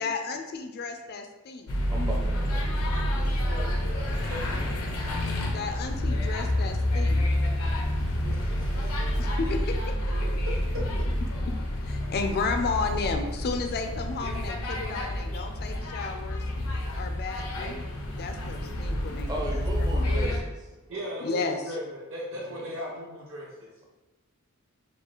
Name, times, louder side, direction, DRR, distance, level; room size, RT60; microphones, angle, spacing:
voice 1, 0.0-1.7 5.5-7.2 9.2-9.9 10.3-10.4 11.4-11.5 11.9-16.4 17.0-20.1 21.2-21.7, left 4 dB, 45° left, 6 dB, 0.4 m, -33 dB
sound 1, 1.7-20.4, left 1 dB, 85° left, 0.6 m, -28 dB
voice 2, 1.9-3.1 5.5-5.6 19.3-20.7 20.9-21.1 22.3-22.4, right 1 dB, 20° right, -2 dB, 0.5 m, -36 dB
voice 3, 3.4-4.8 8.2-9.5 10.1-10.5 20.9-23.7, equal, 65° right, -4 dB, 0.8 m, -39 dB
4.6 x 2.3 x 3.0 m, 1.1 s
head